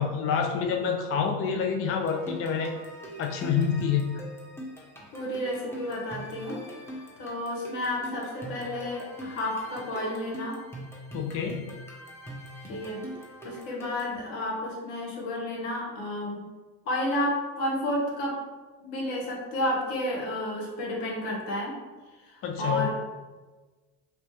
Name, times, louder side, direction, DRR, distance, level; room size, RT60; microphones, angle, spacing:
voice 1, 0.0-2.7 3.2-4.1 11.1-11.7 22.4-22.9, left 6 dB, 35° left, 3 dB, 0.4 m, -27 dB
sound 1, 1.9-14.2, equal, 5° left, 1.0 m, -43 dB
voice 2, 5.1-6.6 7.2-10.6 12.7-13.0 13.4-16.4 16.8-18.4 18.8-21.7 22.2-22.9, left 1 dB, 70° left, -3 dB, 1.2 m, -31 dB
2.9 x 2.9 x 3.1 m, 1.3 s
hypercardioid pair, 65°, 45 cm